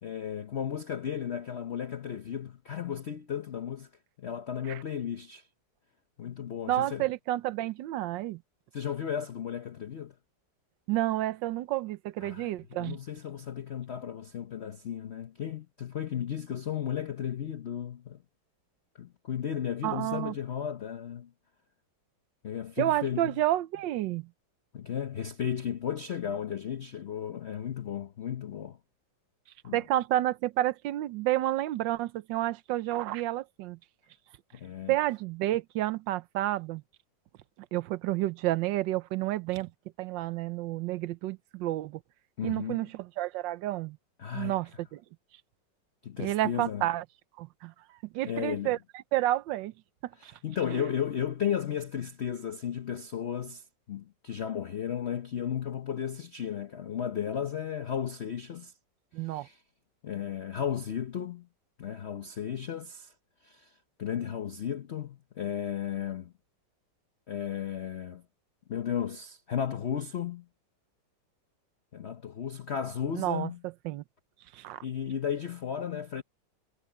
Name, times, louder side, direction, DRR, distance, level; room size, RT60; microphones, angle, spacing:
voice 1, 0.0-3.9 4.2-5.5 6.2-7.1 8.7-10.1 12.2-18.2 19.0-21.3 22.4-23.4 24.7-28.8 29.6-29.8 34.5-35.0 42.4-42.8 44.2-44.6 46.0-46.9 48.2-48.7 50.2-58.7 59.2-59.6 60.0-61.5 61.8-63.1 63.4-66.3 67.3-68.2 68.7-70.5 71.9-73.6 74.8-76.2, left 9 dB, 50° left, 0.8 m, -34 dB
voice 2, 6.7-8.4 10.9-13.0 19.8-20.3 22.8-24.3 29.7-33.8 34.9-36.8 37.7-39.7 40.0-42.0 42.4-44.0 44.3-45.0 46.2-47.0 47.4-47.7 48.1-48.8 49.1-49.7 50.2-50.3 50.7-50.8 59.1-59.5 73.1-73.5 73.8-74.0 74.5-74.8, right 15 dB, 80° right, 1.4 m, -30 dB
omnidirectional pair, 2.0 m